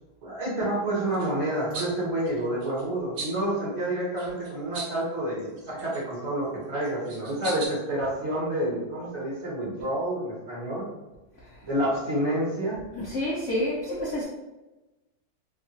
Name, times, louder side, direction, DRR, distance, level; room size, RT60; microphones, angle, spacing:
voice 1, 0.2-10.9 11.6-12.8, right 1 dB, 45° right, -8 dB, 1.1 m, -29 dB
sound 1, 1.1-1.3 1.7-1.9 2.2-2.8 3.2-3.4 4.2-5.0 5.4-6.2 6.8-7.7, right 3 dB, 70° right, 1.3 m, -38 dB
voice 2, 12.9-14.2, left 1 dB, 80° left, -5 dB, 0.6 m, -28 dB
3.6 x 2.2 x 2.8 m, 1.1 s
omnidirectional pair, 2.1 m